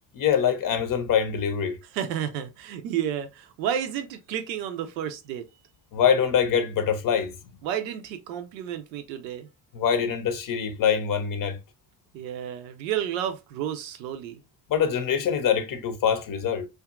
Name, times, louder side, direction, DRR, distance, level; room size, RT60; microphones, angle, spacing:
voice 1, 0.1-1.8 5.9-7.3 9.7-11.6 14.7-16.7, left 7 dB, 40° left, 0.6 m, -24 dB
voice 2, 1.9-5.4 7.6-9.5 12.1-14.4, right 10 dB, 85° right, 0.6 m, -31 dB
2.7 x 2.3 x 2.3 m
hypercardioid pair, 50°, 50 cm